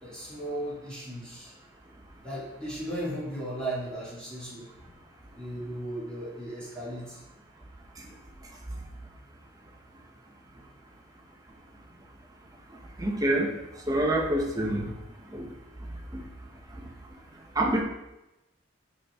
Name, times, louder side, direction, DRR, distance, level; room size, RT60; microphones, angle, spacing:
voice 1, 0.0-1.5 2.2-4.9 5.3-7.2 11.9-12.0, right 1 dB, 5° left, -9 dB, 2.1 m, -36 dB
voice 2, 13.0-13.5 13.9-14.9 15.3-15.5 16.1-16.2 17.5-17.8, right 1 dB, 20° right, 0 dB, 0.8 m, -26 dB
6.4 x 4.2 x 3.5 m, 0.94 s
head